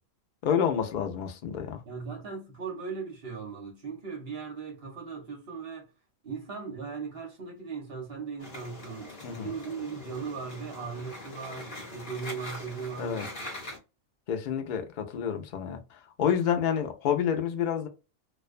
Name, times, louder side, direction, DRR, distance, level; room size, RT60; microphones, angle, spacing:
voice 1, 0.4-1.8 9.2-9.5 13.0-13.3 14.3-17.9, left 8 dB, 60° left, 0.5 m, -29 dB
voice 2, 1.8-5.9 6.2-13.5, right 5 dB, 55° right, 0.9 m, -38 dB
sound 1, 8.4-13.8, left 2 dB, 45° left, 1.1 m, -42 dB
2.4 x 2.2 x 2.4 m
omnidirectional pair, 1.3 m